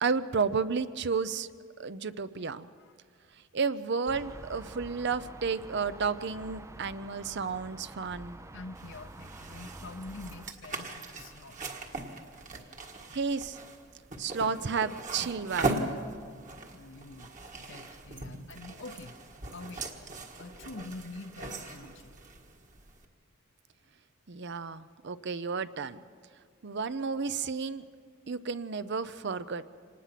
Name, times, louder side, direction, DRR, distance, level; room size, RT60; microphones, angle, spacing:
voice 1, 0.0-1.5 1.8-2.7 3.5-8.4 13.1-13.6 14.2-15.8 24.3-26.0 26.6-27.8 28.3-29.7, right 5 dB, 55° right, 14 dB, 0.7 m, -32 dB
sound 1, 4.1-10.5, right 2 dB, 15° right, 0.5 m, -47 dB
voice 2, 8.5-11.6 16.7-17.3 17.7-19.9 20.4-22.2, left 3 dB, 65° left, 8 dB, 0.9 m, -46 dB
sound 2, 8.7-23.0, right 2 dB, 40° right, 1.7 m, -39 dB
25.5 x 19.5 x 5.9 m, 2.1 s
head